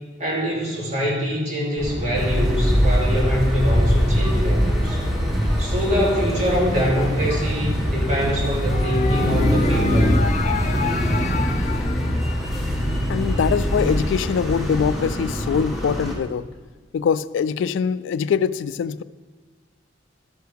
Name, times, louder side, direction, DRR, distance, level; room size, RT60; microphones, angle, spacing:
voice 1, 0.2-5.0 5.6-10.2, equal, 40° right, -4 dB, 2.8 m, -24 dB
sound 1, 1.8-11.2, equal, 25° right, 1.5 m, -26 dB
sound 2, 2.1-16.1, equal, ahead, 1.8 m, -24 dB
sound 3, 8.7-14.7, left 4 dB, 40° left, 0.6 m, -29 dB
voice 2, 13.1-16.5 16.9-19.0, left 7 dB, 85° left, 17 dB, 0.3 m, -23 dB
12.0 x 9.2 x 3.4 m, 1.4 s
head